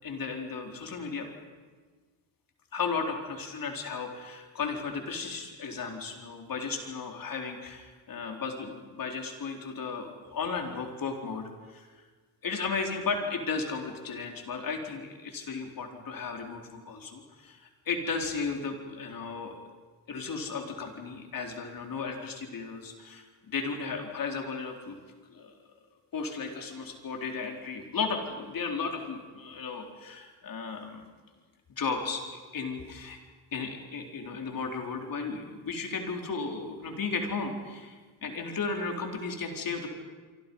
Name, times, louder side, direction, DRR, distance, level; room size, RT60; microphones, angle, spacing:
voice 1, 0.0-1.3 2.7-11.9 12.4-19.6 20.1-25.0 25.3-25.5 26.1-31.0 31.8-33.2 33.5-39.9, left 4 dB, 55° left, 2 dB, 4.0 m, -35 dB
27.5 x 25.0 x 5.5 m, 1.4 s
cardioid pair, 110°, 40 cm